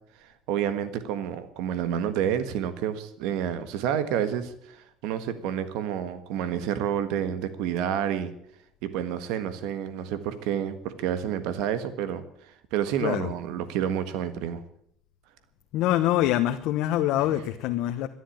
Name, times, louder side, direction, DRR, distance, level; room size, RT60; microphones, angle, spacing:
voice 1, 0.2-8.3 8.8-14.6, right 9 dB, 85° right, 12 dB, 1.5 m, -29 dB
voice 2, 13.0-13.3 15.7-18.1, left 13 dB, 75° left, 6 dB, 1.0 m, -25 dB
13.0 x 11.0 x 9.9 m, 0.69 s
cardioid pair, 115°, 0 cm